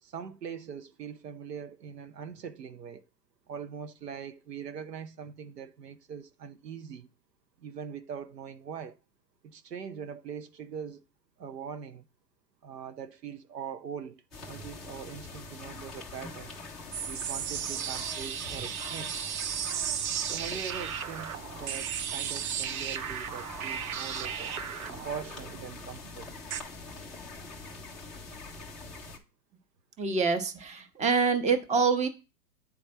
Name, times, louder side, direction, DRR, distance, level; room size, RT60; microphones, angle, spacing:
voice 1, 0.0-3.0 3.5-7.1 7.6-9.0 9.4-11.0 11.4-12.1 12.6-16.5 17.1-19.1 20.3-24.5 25.0-26.3, right 7 dB, 85° right, 0.9 m, -42 dB
sound 1, 14.3-29.2, left 3 dB, ahead, 0.3 m, -44 dB
sound 2, 16.9-26.6, right 9 dB, 60° right, 0.8 m, -35 dB
voice 2, 30.0-32.1, right 5 dB, 15° right, 0.9 m, -26 dB
9.7 x 3.3 x 4.4 m
hypercardioid pair, 120°, 48 cm